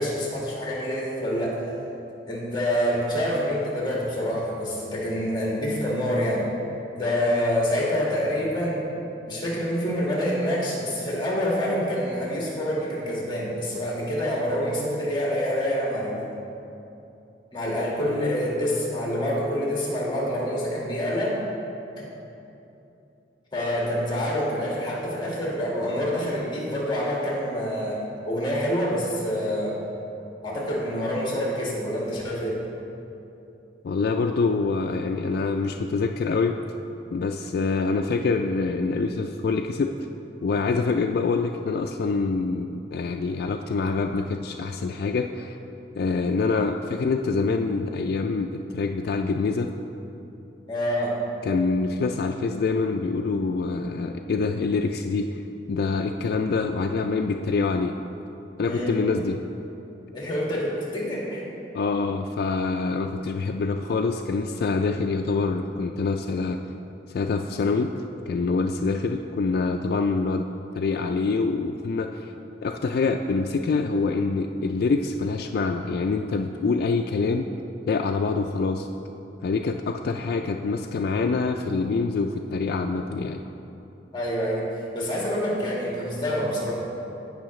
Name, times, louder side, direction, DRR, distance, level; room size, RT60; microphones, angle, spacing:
voice 1, 0.0-1.6 2.3-6.5 6.9-8.9 9.3-16.3 17.5-21.4 22.0-22.1 23.5-28.0 28.3-29.7 30.4-32.6 50.7-51.1 58.6-58.9 60.1-61.4 84.1-84.7 84.9-86.7, equal, 25° left, -4 dB, 1.7 m, -26 dB
voice 2, 33.8-36.6 37.1-39.9 40.4-45.6 46.0-49.7 51.5-55.4 55.7-57.9 58.6-59.4 61.7-66.6 67.1-67.9 68.3-70.5 70.7-72.3 72.6-77.5 77.9-78.9 79.4-83.4, left 4 dB, 55° left, 3 dB, 0.3 m, -25 dB
16.0 x 5.6 x 3.1 m, 2.9 s
head